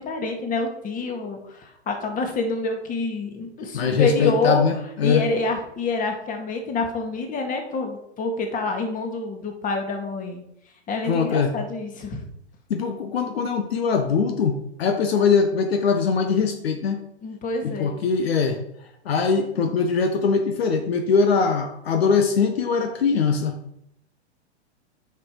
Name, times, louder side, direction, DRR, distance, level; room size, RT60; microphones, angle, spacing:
voice 1, 0.0-4.6 5.0-10.4 10.9-12.2 17.2-18.0, left 3 dB, 25° left, 4 dB, 2.0 m, -27 dB
voice 2, 3.7-5.3 11.0-11.5 12.7-17.0 17.6-18.6 19.0-23.6, left 5 dB, 60° left, 5 dB, 1.2 m, -22 dB
9.5 x 6.0 x 4.7 m, 0.76 s
figure-of-eight pair, 110°, 33 cm